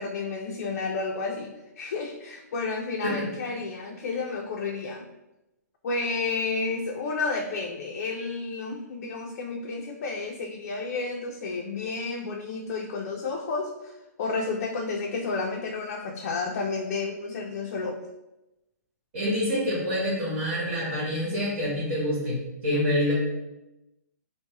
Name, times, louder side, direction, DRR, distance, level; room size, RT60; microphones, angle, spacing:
voice 1, 0.0-5.1 5.8-18.0, left 4 dB, 50° left, 1 dB, 0.4 m, -31 dB
voice 2, 19.1-23.1, left 1 dB, 45° right, -6 dB, 1.4 m, -27 dB
3.2 x 2.0 x 3.4 m, 0.96 s
hypercardioid pair, 150°, 9 cm